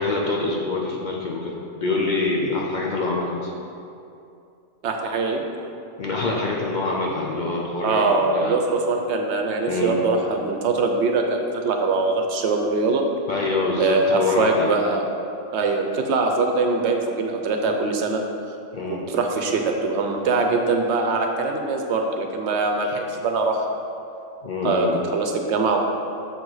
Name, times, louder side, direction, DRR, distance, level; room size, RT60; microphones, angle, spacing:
voice 1, 0.0-3.5 6.0-8.5 9.7-10.0 13.3-14.7 18.7-19.0 22.8-22.9 24.4-25.0, left 3 dB, 50° left, -2 dB, 0.6 m, -25 dB
voice 2, 4.8-5.4 7.8-13.0 13.8-15.0 15.5-18.2 18.8-23.6 24.6-25.8, right 3 dB, 70° right, 3 dB, 0.9 m, -22 dB
6.7 x 4.8 x 4.0 m, 2.7 s
omnidirectional pair, 1.3 m